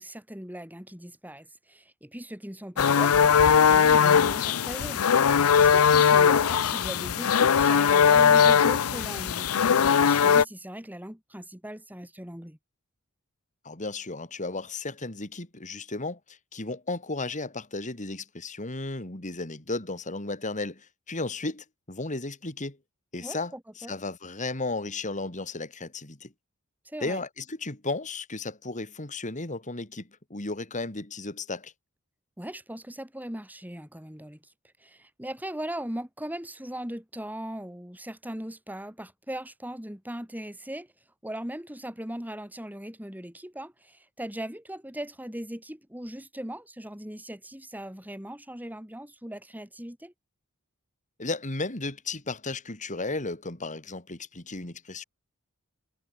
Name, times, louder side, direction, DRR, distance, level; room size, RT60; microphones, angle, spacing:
voice 1, 0.0-12.6 23.2-23.9 26.8-27.2 32.4-34.4 34.8-40.9 41.2-50.1, right 1 dB, 10° right, 4.2 m, -39 dB
sound 1, 2.8-10.4, left 7 dB, 90° left, 0.6 m, -20 dB
voice 2, 13.6-22.8 23.1-26.3 27.0-31.7 51.2-55.0, left 3 dB, 35° left, 3.0 m, -34 dB
head